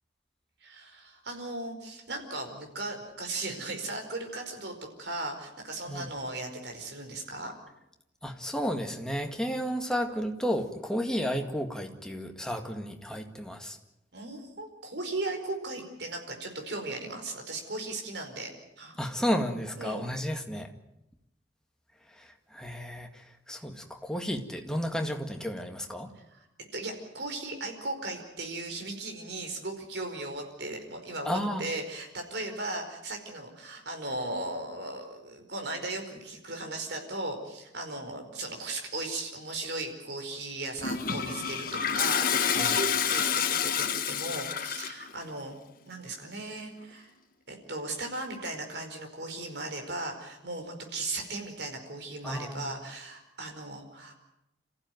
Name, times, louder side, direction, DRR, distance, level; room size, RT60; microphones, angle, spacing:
voice 1, 0.6-7.5 14.1-18.5 18.8-19.0 19.8-20.1 26.1-26.4 26.7-45.6 45.9-47.1 47.5-54.1, right 2 dB, 65° right, 3 dB, 4.9 m, -37 dB
voice 2, 8.2-13.8 19.0-20.7 22.1-26.2 31.2-31.7 42.6-42.8 52.2-52.7, equal, 5° left, 4 dB, 2.0 m, -32 dB
Toilet flush, 40.8-45.1, left 7 dB, 50° left, 1.5 m, -28 dB
27.5 x 15.0 x 9.4 m, 0.88 s
head